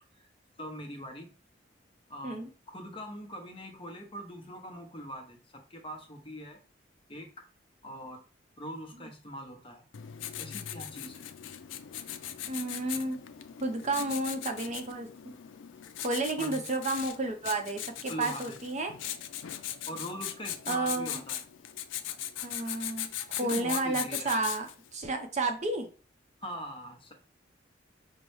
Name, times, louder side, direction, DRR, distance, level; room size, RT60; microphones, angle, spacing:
voice 1, 0.6-1.3 2.1-6.6 7.1-7.3 7.8-8.2 8.6-9.8 10.4-11.2 16.4-16.6 18.1-18.5 19.9-21.4 23.4-24.4 26.4-27.1, equal, 30° left, 3 dB, 0.8 m, -42 dB
Writing, 9.9-24.9, left 11 dB, 85° left, 0.4 m, -39 dB
voice 2, 12.5-13.2 13.6-15.1 16.0-18.9 20.7-21.2 22.4-23.1 23.4-25.9, right 2 dB, 40° right, 5 dB, 0.6 m, -31 dB
5.4 x 2.1 x 3.1 m, 0.37 s
head